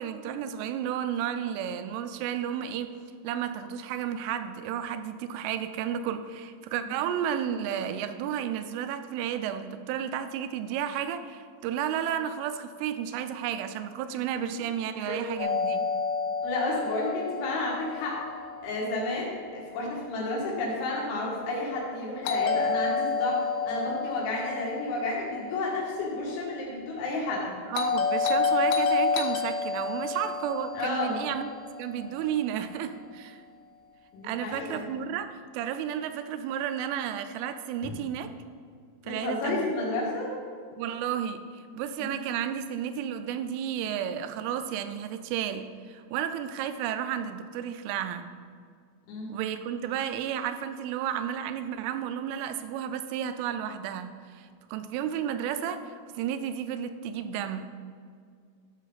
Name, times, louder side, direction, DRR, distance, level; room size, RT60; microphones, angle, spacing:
voice 1, 0.0-3.0 3.2-15.9 27.7-31.5 31.8-33.4 34.2-38.3 39.0-39.7 40.8-48.3 49.3-57.7, right 9 dB, 85° right, 9 dB, 3.1 m, -32 dB
Doorbell, 15.4-19.4 22.2-26.5 27.7-32.2, left 4 dB, 90° left, 3.2 m, -30 dB
voice 2, 16.4-18.2 18.6-27.5 30.8-31.2 34.1-34.8 37.8-37.9 39.1-40.3 42.0-42.2 49.1-49.3, left 2 dB, 75° left, -4 dB, 4.2 m, -31 dB
12.5 x 6.5 x 4.0 m, 2.1 s
omnidirectional pair, 5.5 m